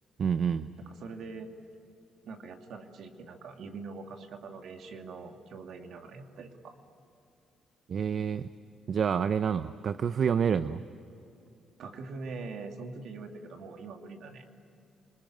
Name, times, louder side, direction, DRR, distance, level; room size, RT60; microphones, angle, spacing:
voice 1, 0.2-0.7 7.9-8.5 8.9-10.8, right 7 dB, 55° right, 12 dB, 0.7 m, -28 dB
voice 2, 0.8-1.5 2.2-6.7 11.8-14.5, right 4 dB, 70° right, 4 dB, 2.7 m, -43 dB
27.0 x 20.5 x 9.3 m, 2.7 s
cardioid pair, 90°, 0 cm